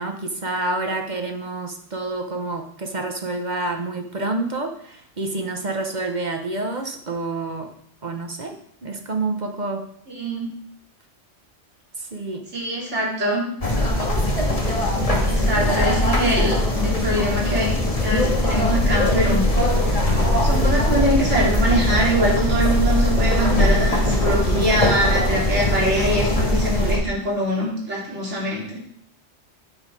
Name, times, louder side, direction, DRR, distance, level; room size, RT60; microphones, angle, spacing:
voice 1, 0.0-7.7 8.0-9.8 12.0-12.4, right 2 dB, 40° right, 4 dB, 1.0 m, -28 dB
voice 2, 10.1-10.5 12.5-13.5 15.2-16.6 16.8-19.4 20.4-28.8, right 1 dB, 70° right, -5 dB, 3.4 m, -23 dB
sound 1, 13.6-27.0, left 1 dB, 30° left, 1.7 m, -20 dB
8.9 x 6.3 x 4.8 m, 0.66 s
omnidirectional pair, 1.3 m